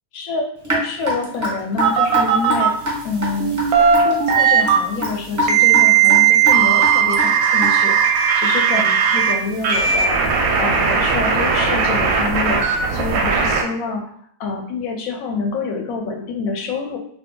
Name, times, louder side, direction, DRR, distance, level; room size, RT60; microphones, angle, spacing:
voice 1, 0.1-2.7 3.0-10.2 10.6-12.6 12.9-14.0 14.4-17.0, left 3 dB, 70° left, 3 dB, 0.9 m, -27 dB
Raindrop / Drip, 0.6-8.0, left 1 dB, 25° right, 0.4 m, -25 dB
sound 1, 1.8-2.7 3.4-4.8 5.5-9.3 9.6-13.6, right 7 dB, 70° right, 0.9 m, -16 dB
2.7 x 2.4 x 3.6 m, 0.64 s
omnidirectional pair, 1.7 m